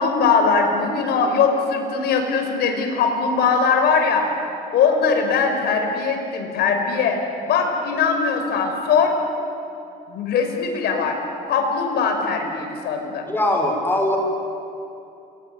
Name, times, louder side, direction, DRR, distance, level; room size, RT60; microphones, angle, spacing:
voice 1, 0.0-4.3 4.7-7.2 7.5-9.1 10.1-11.2 11.5-13.2, left 5 dB, 75° left, 4 dB, 5.5 m, -20 dB
voice 2, 13.3-14.2, left 1 dB, 10° left, 2 dB, 5.9 m, -21 dB
28.0 x 22.0 x 9.6 m, 2.8 s
cardioid pair, 110°, 17 cm